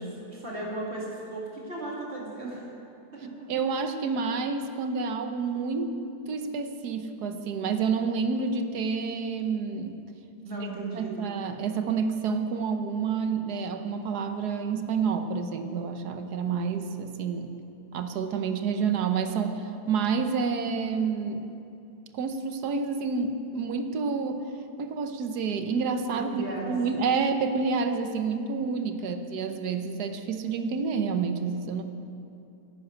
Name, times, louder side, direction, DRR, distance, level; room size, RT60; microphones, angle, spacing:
voice 1, 0.0-2.7 3.1-3.5 10.4-11.2 26.3-26.7 29.0-29.1, right 2 dB, 40° right, -5 dB, 2.8 m, -36 dB
voice 2, 3.5-6.0 6.3-10.0 10.9-17.5 17.9-21.4 22.1-24.4 24.8-31.8, right 5 dB, 75° right, 7 dB, 1.4 m, -29 dB
11.0 x 10.5 x 8.0 m, 2.7 s
omnidirectional pair, 1.7 m